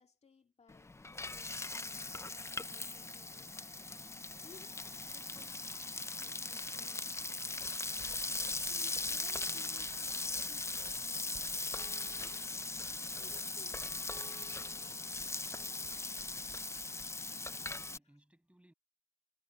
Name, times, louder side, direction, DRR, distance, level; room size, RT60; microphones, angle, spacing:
voice 1, 0.0-3.8 4.4-7.8 8.4-10.7 11.0-12.6 13.1-15.5, left 4 dB, 60° left, 2.0 m, -63 dB
Frying (food), 0.7-18.0, left 3 dB, 20° left, 0.5 m, -39 dB
sound 1, 6.6-11.7, right 6 dB, 80° right, 4.4 m, -68 dB
voice 2, 17.0-18.7, right 1 dB, 10° right, 7.5 m, -68 dB
wide cardioid pair, 105°, 13 cm